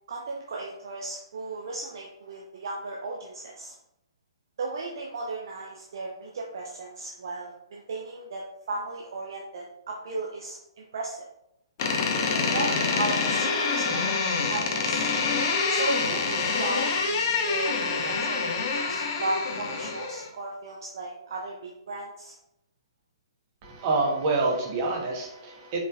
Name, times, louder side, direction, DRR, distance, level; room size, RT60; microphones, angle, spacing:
voice 1, 0.1-3.7 4.6-11.3 12.5-14.2 14.5-15.1 15.7-22.3, right 3 dB, 55° right, -1 dB, 0.6 m, -35 dB
Door, 11.8-20.3, left 4 dB, 40° left, 0.8 m, -26 dB
voice 2, 23.6-25.8, right 3 dB, 35° right, 0 dB, 1.3 m, -27 dB
5.0 x 3.8 x 2.5 m, 0.80 s
figure-of-eight pair, 125°, 3 cm